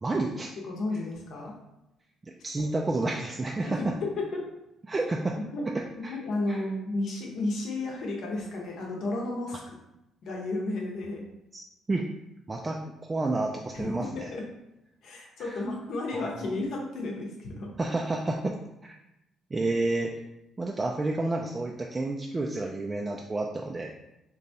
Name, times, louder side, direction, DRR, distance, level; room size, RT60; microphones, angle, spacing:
voice 1, 0.0-0.5 2.2-4.0 4.9-5.4 5.7-6.2 6.5-6.6 11.9-12.1 12.5-14.3 15.4-15.6 16.1-16.5 17.8-18.6 18.8-18.9 19.5-20.1 20.6-23.9, right 2 dB, 25° right, 0 dB, 0.3 m, -30 dB
voice 2, 0.6-1.5 2.6-2.7 3.6-3.9 4.2-4.4 5.5-5.6 6.1-9.8 10.2-11.2 13.7-14.4 15.0-17.7, left 2 dB, 70° left, -1 dB, 0.8 m, -33 dB
3.9 x 2.3 x 2.7 m, 0.88 s
cardioid pair, 80°, 0 cm